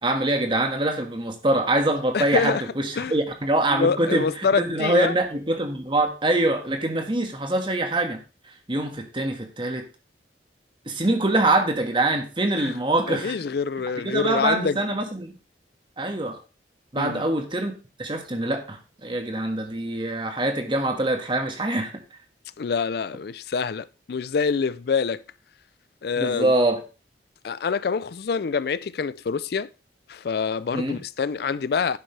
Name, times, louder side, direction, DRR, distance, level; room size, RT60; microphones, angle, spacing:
voice 1, 0.0-8.2 8.7-9.8 10.8-13.4 14.0-15.3 16.0-16.4 16.9-17.7 18.0-22.0 26.2-26.8 30.7-31.0, right 2 dB, 30° right, 1.6 m, -24 dB
voice 2, 2.1-2.6 3.0-3.1 3.7-5.1 12.6-12.7 13.1-14.8 17.0-17.2 22.6-25.2 26.0-26.5 27.4-29.7 30.1-32.0, left 5 dB, 60° left, 0.4 m, -26 dB
10.5 x 7.8 x 3.3 m
head